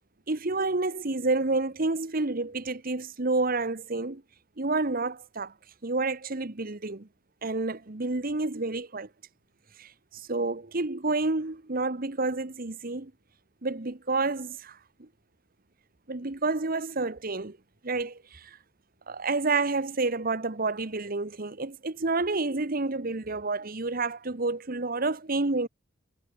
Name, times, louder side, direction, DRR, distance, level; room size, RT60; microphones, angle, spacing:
voice 1, 0.3-4.2 4.6-5.5 5.8-7.1 7.4-9.1 9.8-13.1 13.6-15.1 16.1-17.6 17.8-18.6 19.1-25.7, right 3 dB, 45° right, 1.3 m, -29 dB
head